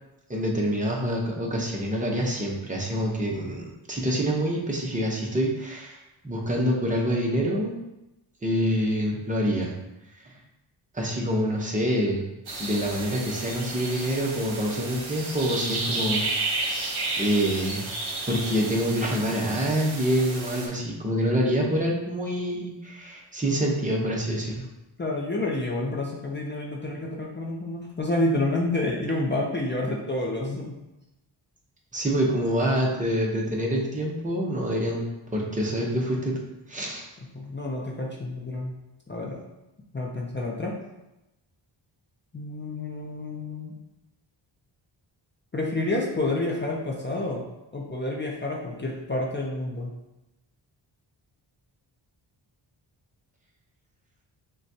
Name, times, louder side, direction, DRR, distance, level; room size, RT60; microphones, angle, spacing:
voice 1, 0.3-7.8 8.4-9.7 10.9-12.3 12.6-16.8 17.2-17.9 18.3-24.7 31.9-35.0 35.3-36.3 36.7-37.1, equal, 15° right, -1 dB, 0.8 m, -26 dB
sound 1, 12.5-20.7, right 2 dB, 55° right, 1.0 m, -32 dB
voice 2, 25.0-30.8 37.3-38.8 39.1-39.4 39.9-40.8 42.3-43.7 45.5-49.9, left 2 dB, 25° left, -2 dB, 0.5 m, -29 dB
6.1 x 2.3 x 2.7 m, 0.95 s
wide cardioid pair, 105°, 46 cm